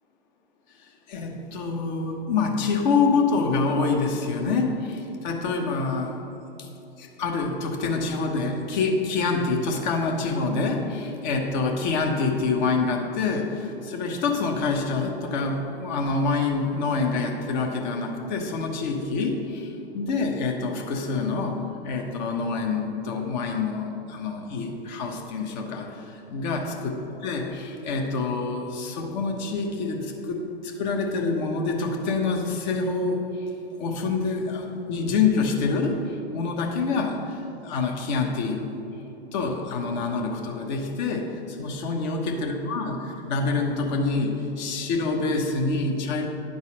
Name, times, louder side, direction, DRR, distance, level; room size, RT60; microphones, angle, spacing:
voice 1, 1.1-6.2 6.6-6.7 7.0-33.5 33.8-38.7 39.3-46.3, left 4 dB, 45° left, 2 dB, 1.1 m, -26 dB
9.9 x 4.1 x 6.2 m, 2.9 s
hypercardioid pair, 115°, 31 cm